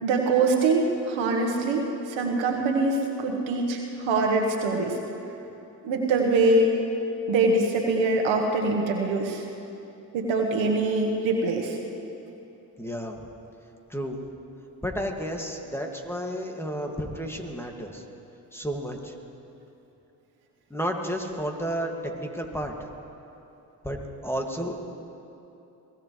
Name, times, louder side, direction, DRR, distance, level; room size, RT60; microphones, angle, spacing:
voice 1, 0.0-5.0 5.8-6.8 7.3-9.4 10.1-11.8, right 3 dB, 85° right, 1 dB, 1.5 m, -24 dB
voice 2, 12.8-13.3 13.9-14.2 14.8-18.0 18.5-19.1 20.7-22.7 23.8-24.8, equal, 5° left, 2 dB, 2.2 m, -32 dB
23.0 x 15.5 x 3.3 m, 2.9 s
supercardioid pair, 45°, 45 cm